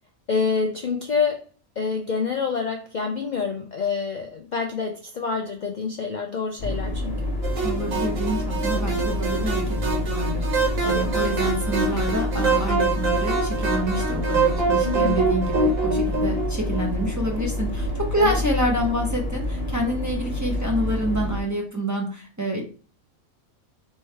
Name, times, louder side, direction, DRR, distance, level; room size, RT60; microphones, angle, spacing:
voice 1, 0.3-1.4 1.8-7.1 10.8-11.3 14.8-15.2 18.2-18.4, left 5 dB, 70° left, 3 dB, 0.4 m, -27 dB
sound 1, 6.6-21.4, left 1 dB, 50° left, 1.1 m, -28 dB
sound 2, 7.4-18.0, right 3 dB, 70° right, 1.6 m, -25 dB
voice 2, 7.6-22.6, right 1 dB, 15° right, -1 dB, 0.8 m, -27 dB
4.4 x 3.3 x 3.4 m, 0.38 s
omnidirectional pair, 1.4 m